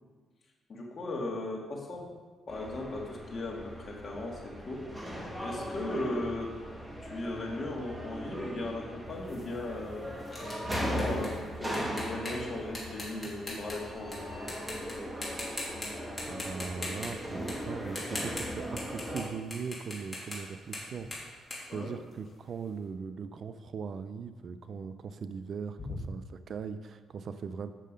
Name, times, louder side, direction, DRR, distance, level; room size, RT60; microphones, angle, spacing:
voice 1, 0.7-2.1 2.5-4.9 5.4-6.5 7.0-10.0 10.7-14.7 21.7-21.9 25.9-26.0, left 2 dB, 40° left, -1 dB, 2.0 m, -37 dB
sound 1, 2.5-19.2, equal, 10° right, 1.5 m, -39 dB
sound 2, 9.3-14.2 14.5-14.9 15.2-15.9 16.2-19.2 19.5-22.5, left 1 dB, 15° left, 2.9 m, -41 dB
voice 2, 16.3-27.7, right 5 dB, 55° right, 11 dB, 0.5 m, -40 dB
7.6 x 6.5 x 5.1 m, 1.4 s
cardioid pair, 90°, 0 cm